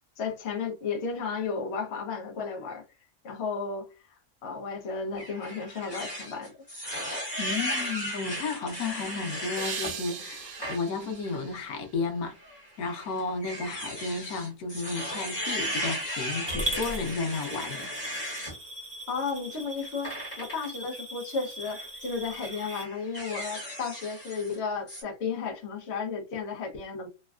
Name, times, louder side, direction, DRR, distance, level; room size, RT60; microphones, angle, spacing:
voice 1, 0.2-2.8 3.2-3.9 4.4-6.5 19.1-27.1, left 5 dB, 55° left, 1.0 m, -33 dB
sound 1, 5.2-9.9 10.4-10.8 11.2-11.4 12.4-18.6 20.0-20.7 21.6-21.9 22.3-24.6 24.9-25.0, equal, 30° left, 1.2 m, -36 dB
voice 2, 7.4-12.4 12.8-17.9, left 4 dB, 85° left, 1.3 m, -33 dB
sound 2, 9.6-12.7, right 7 dB, 80° right, 0.4 m, -41 dB
Coin (dropping) / Glass, 16.5-22.8, right 1 dB, 25° right, 0.8 m, -38 dB
3.3 x 2.2 x 2.3 m
omnidirectional pair, 1.5 m